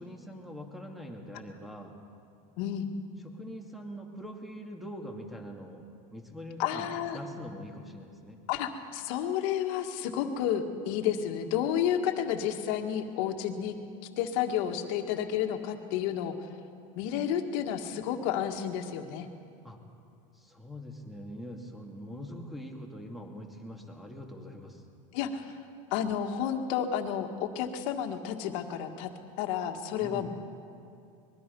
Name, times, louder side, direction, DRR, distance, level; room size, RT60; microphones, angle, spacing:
voice 1, 0.0-2.0 3.2-5.8 6.1-8.4 19.6-19.8 20.3-24.8 30.0-30.3, equal, ahead, 1 dB, 2.5 m, -43 dB
voice 2, 2.6-2.9 6.6-7.2 8.5-13.8 14.2-16.5 17.0-19.3 22.1-22.3 25.1-25.5 25.9-29.1 29.4-30.3, left 9 dB, 70° left, 5 dB, 1.9 m, -31 dB
23.5 x 21.5 x 5.5 m, 2.5 s
supercardioid pair, 130°, 17 cm